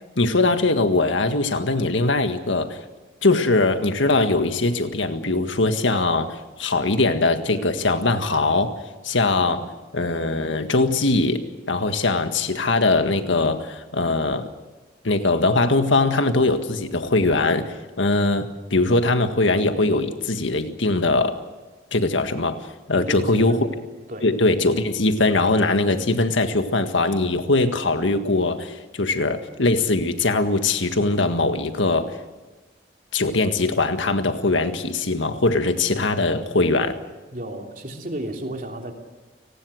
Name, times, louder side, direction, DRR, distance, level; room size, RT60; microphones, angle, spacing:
voice 1, 0.2-2.8 3.2-8.8 9.0-11.4 11.7-14.5 15.0-21.4 21.9-22.6 22.9-23.7 24.2-32.1 33.1-37.0, left 2 dB, 90° left, 8 dB, 1.8 m, -21 dB
voice 2, 22.9-23.7 24.1-24.3 37.3-38.9, right 1 dB, 45° right, 2 dB, 3.1 m, -32 dB
29.5 x 19.0 x 6.5 m, 1.2 s
head